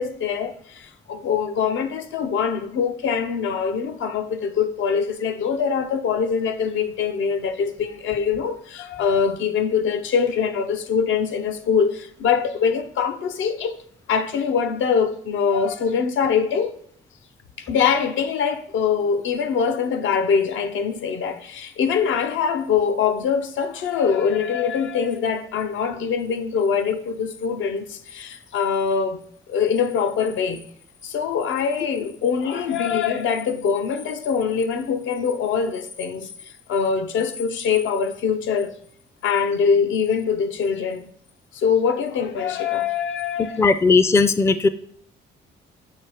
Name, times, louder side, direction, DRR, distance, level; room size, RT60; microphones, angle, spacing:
voice 1, 0.0-13.8 14.1-16.8 17.6-29.2 29.5-30.6 31.0-36.3 36.7-38.7 39.2-41.1 41.5-43.6, left 6 dB, 75° left, 0.7 m, -23 dB
voice 2, 43.4-44.7, left 4 dB, 15° left, 0.3 m, -17 dB
7.4 x 2.6 x 4.8 m
cardioid pair, 90°, 20 cm